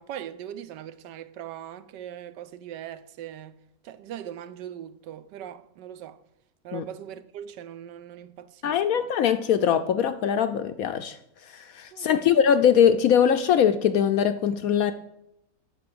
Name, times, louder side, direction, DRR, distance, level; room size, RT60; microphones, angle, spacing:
voice 1, 0.0-3.6 3.8-6.2 6.6-9.1 11.9-12.3, right 10 dB, 80° right, 1.3 m, -40 dB
voice 2, 8.6-11.2 11.4-14.9, left 8 dB, 70° left, 0.8 m, -22 dB
9.6 x 6.2 x 7.7 m
omnidirectional pair, 1.9 m